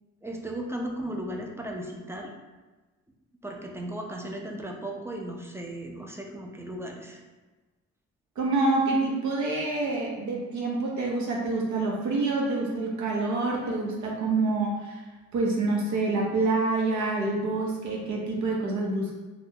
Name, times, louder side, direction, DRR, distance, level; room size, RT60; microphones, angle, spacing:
voice 1, 0.2-2.3 3.4-7.2, right 1 dB, 10° right, 1 dB, 0.4 m, -36 dB
voice 2, 8.4-15.0 15.3-19.1, right 3 dB, 70° right, -2 dB, 0.8 m, -27 dB
2.7 x 2.2 x 3.6 m, 1.2 s
cardioid pair, 90°, 30 cm